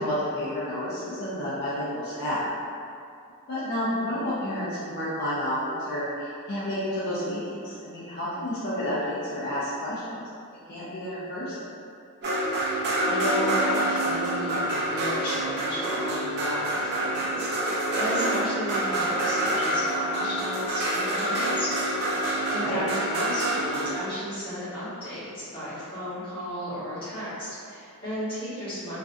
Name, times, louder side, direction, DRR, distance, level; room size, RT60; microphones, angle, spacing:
voice 1, 0.0-2.5 3.5-11.6 22.5-22.9, left 1 dB, 45° left, -10 dB, 0.5 m, -30 dB
sound 1, 12.2-24.0, right 1 dB, 50° right, 0.5 m, -27 dB
voice 2, 12.5-21.7 22.1-29.0, equal, 25° left, -14 dB, 1.1 m, -34 dB
2.4 x 2.4 x 2.4 m, 2.4 s
head